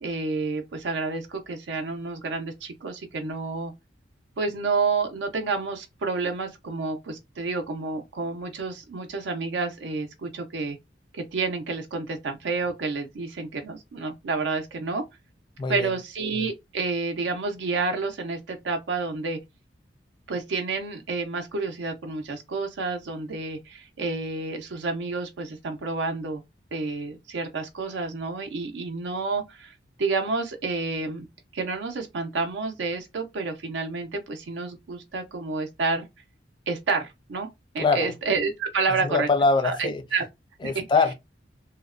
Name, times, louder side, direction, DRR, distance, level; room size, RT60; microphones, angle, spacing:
voice 1, 0.0-3.7 4.4-10.8 11.1-15.0 15.7-19.4 20.3-26.4 26.7-31.3 31.5-36.1 36.7-37.5 37.7-39.3 39.6-40.2 40.6-40.9, right 4 dB, 75° right, 0.4 m, -29 dB
voice 2, 15.6-15.9 37.8-38.1 39.0-40.0 40.6-41.1, left 4 dB, 25° left, 0.3 m, -23 dB
2.8 x 2.0 x 2.4 m
head